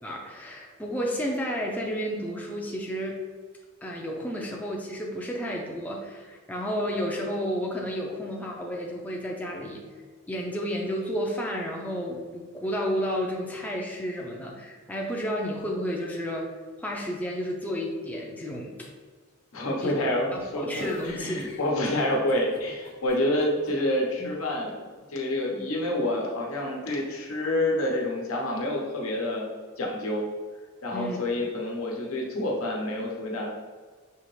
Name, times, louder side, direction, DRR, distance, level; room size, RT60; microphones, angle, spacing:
voice 1, 0.0-3.2 3.8-9.8 10.3-16.5 16.8-18.9 19.8-19.9 20.3-21.4 24.2-24.3 30.9-31.2, equal, 5° left, -2 dB, 0.5 m, -31 dB
voice 2, 19.5-24.8 25.1-29.5 29.8-30.2 30.8-33.5, left 1 dB, 80° left, -2 dB, 1.0 m, -28 dB
sound 1, 20.7-23.7, left 3 dB, 45° left, 0.7 m, -47 dB
5.6 x 2.9 x 3.1 m, 1.5 s
head